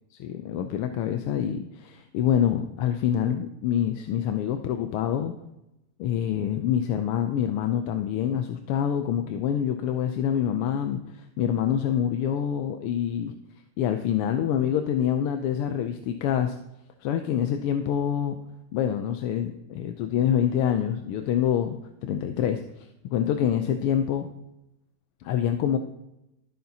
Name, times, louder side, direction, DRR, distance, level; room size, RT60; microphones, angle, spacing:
voice 1, 0.2-5.3 6.0-13.4 13.8-16.6 17.0-18.4 18.7-21.8 22.0-22.6 23.0-24.3 25.2-25.8, left 9 dB, 90° left, 7 dB, 1.6 m, -26 dB
13.5 x 8.6 x 2.8 m, 0.87 s
omnidirectional pair, 2.4 m